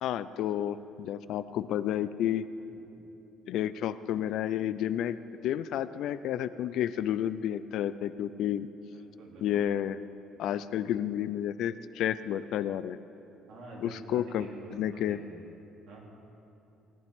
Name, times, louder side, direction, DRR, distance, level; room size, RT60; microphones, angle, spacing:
voice 1, 0.0-2.5 3.5-8.7 9.4-10.0 10.4-13.0 13.8-14.5 14.7-15.2, left 11 dB, 55° left, 14 dB, 0.3 m, -31 dB
voice 2, 8.9-9.7 13.5-15.2 15.9-16.0, right 2 dB, 55° right, -4 dB, 2.9 m, -47 dB
17.5 x 12.0 x 3.6 m, 3.0 s
cardioid pair, 175°, 0 cm